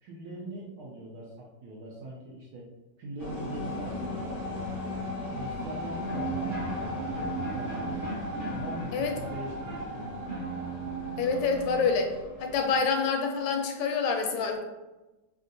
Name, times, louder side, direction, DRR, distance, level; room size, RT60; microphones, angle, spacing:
voice 1, 0.0-2.7 3.0-4.8 5.2-8.1 8.5-10.1, right 1 dB, 70° right, -4 dB, 0.9 m, -42 dB
sound 1, 3.2-12.8, left 1 dB, 50° left, 0.7 m, -36 dB
sound 2, 6.0-11.8, right 5 dB, 40° right, 0.7 m, -37 dB
voice 2, 11.2-12.1 12.4-14.6, left 5 dB, 85° left, 4 dB, 1.3 m, -27 dB
3.5 x 2.4 x 2.6 m, 1.1 s
omnidirectional pair, 2.0 m